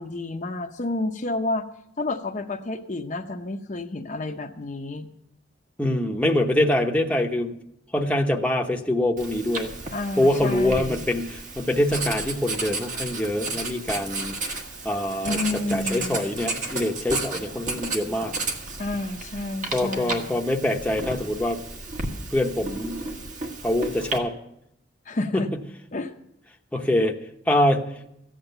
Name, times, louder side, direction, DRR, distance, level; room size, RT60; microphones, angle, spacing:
voice 1, 0.0-1.7 2.0-5.1 9.8-11.0 15.2-16.2 18.8-20.4 25.1-25.5 25.9-26.1, left 2 dB, 40° left, 4 dB, 0.8 m, -30 dB
voice 2, 5.8-7.5 7.9-9.7 10.2-14.4 14.8-18.3 19.7-21.6 22.3-23.0 23.6-24.3 25.3-25.6 26.7-27.2 27.5-27.9, left 1 dB, 5° left, 1 dB, 0.9 m, -24 dB
Writing, 9.2-24.2, right 3 dB, 45° right, 1.5 m, -33 dB
14.5 x 8.9 x 6.8 m, 0.79 s
head